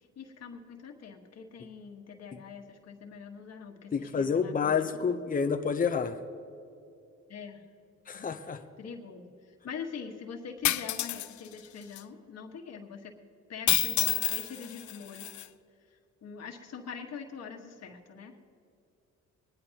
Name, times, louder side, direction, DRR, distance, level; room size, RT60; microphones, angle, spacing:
voice 1, 0.2-4.7 7.3-7.6 8.1-8.3 8.8-9.3 9.6-13.1 13.5-15.3 16.2-18.3, left 6 dB, 55° left, 3 dB, 1.5 m, -43 dB
voice 2, 3.9-6.2 8.1-8.6, left 6 dB, 25° left, 7 dB, 0.8 m, -29 dB
sound 1, 10.6-11.3 12.0-12.1 13.7-15.5, left 14 dB, 75° left, 0.6 m, -29 dB
22.0 x 10.5 x 2.9 m, 2.5 s
cardioid pair, 90°, 30 cm